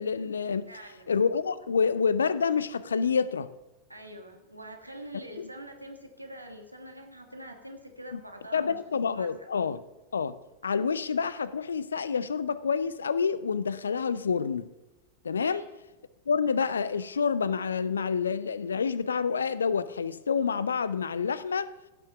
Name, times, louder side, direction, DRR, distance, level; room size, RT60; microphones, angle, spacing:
voice 1, 0.0-0.7 1.1-3.5 5.4-5.5 8.1-8.2 8.5-9.8 10.1-10.4 10.6-14.7 15.2-15.6 16.3-21.7, left 6 dB, 70° left, 0.5 m, -28 dB
voice 2, 0.7-1.1 3.9-8.8 9.1-9.5 15.4-15.6, right 1 dB, 85° right, 1.5 m, -45 dB
15.0 x 6.2 x 6.8 m
figure-of-eight pair, 90°, 0 cm